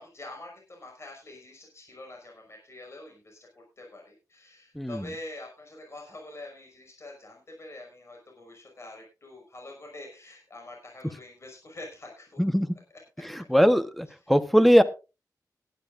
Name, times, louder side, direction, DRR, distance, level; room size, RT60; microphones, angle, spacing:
voice 1, 0.0-3.5 3.8-12.4 14.2-14.3, left 2 dB, 40° left, 1 dB, 5.5 m, -45 dB
voice 2, 13.5-14.8, equal, ahead, 10 dB, 1.1 m, -20 dB
19.0 x 11.5 x 2.6 m, 0.30 s
wide cardioid pair, 125°, 7 cm